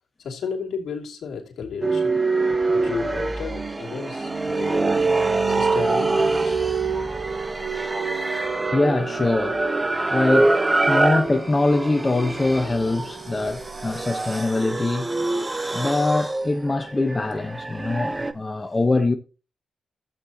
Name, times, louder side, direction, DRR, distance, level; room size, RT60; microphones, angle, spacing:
voice 1, 0.2-2.2 2.7-5.0 5.5-6.6, left 6 dB, 70° left, 2.8 m, -33 dB
sound 1, 1.8-18.3, right 2 dB, 20° right, 1.0 m, -25 dB
sound 2, 3.4-15.0, right 5 dB, 60° right, 1.9 m, -29 dB
voice 2, 8.7-9.6 10.1-10.6 10.9-15.1 15.7-19.1, left 2 dB, 25° left, 1.0 m, -23 dB
12.5 x 8.4 x 2.9 m
cardioid pair, 60°, 0 cm